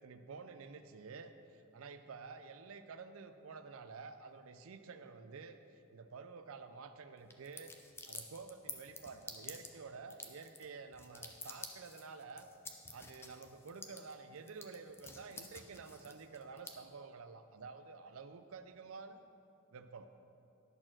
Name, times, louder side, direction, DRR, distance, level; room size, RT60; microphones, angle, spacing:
voice 1, 0.0-7.8 8.1-12.5 12.9-19.2 19.7-20.1, right 4 dB, 80° right, 9 dB, 0.5 m, -50 dB
sound 1, 7.3-16.7, left 3 dB, 10° left, 0.5 m, -50 dB
10.5 x 4.4 x 6.1 m, 2.7 s
head